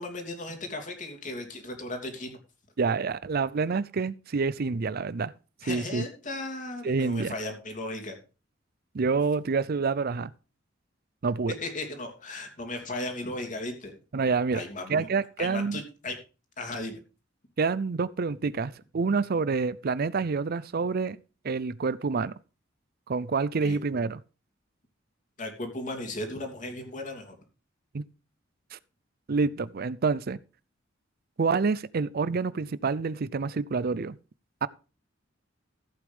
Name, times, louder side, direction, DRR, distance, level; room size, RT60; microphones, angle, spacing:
voice 1, 0.0-2.4 5.6-8.2 11.6-13.9 14.5-15.1 15.4-16.2 16.6-17.0 23.6-23.8 25.4-27.4, left 2 dB, 40° left, 3.0 m, -36 dB
voice 2, 2.8-5.3 5.7-6.0 6.8-7.3 8.9-10.3 11.2-11.5 14.1-14.6 14.9-15.8 17.6-21.2 21.4-22.3 23.1-24.2 27.9-28.0 28.7-28.8 29.3-30.4 31.4-34.2 34.6-34.7, right 4 dB, 50° right, 0.5 m, -27 dB
14.5 x 8.5 x 3.5 m
head